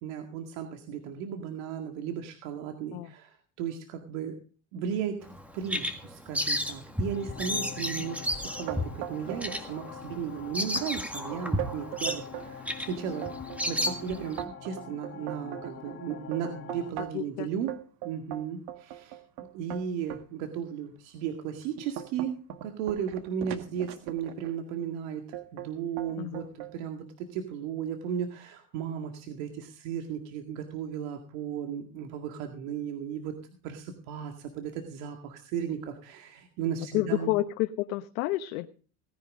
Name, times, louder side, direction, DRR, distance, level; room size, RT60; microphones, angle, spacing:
voice 1, 0.0-4.4 4.7-13.3 13.6-17.7 18.0-19.2 19.5-22.4 22.6-25.2 25.5-37.3, right 8 dB, 75° right, 4 dB, 2.1 m, -35 dB
Bird vocalization bird call bird song, 5.2-14.4, left 1 dB, 5° right, 1.8 m, -33 dB
sound 1, 6.9-16.9, left 8 dB, 30° left, 2.1 m, -45 dB
sound 2, 8.7-9.6 9.9-10.4 10.8-10.9 11.3-12.5 13.0-17.3 17.7-20.2 20.8-21.0 21.5-24.5 25.3-25.7 26.0-26.7, right 12 dB, 60° right, 1.7 m, -39 dB
voice 2, 17.1-17.5 26.2-26.4 36.9-38.7, left 16 dB, 80° left, 8 dB, 1.0 m, -29 dB
18.5 x 10.5 x 3.7 m, 0.39 s
supercardioid pair, 125°, 40 cm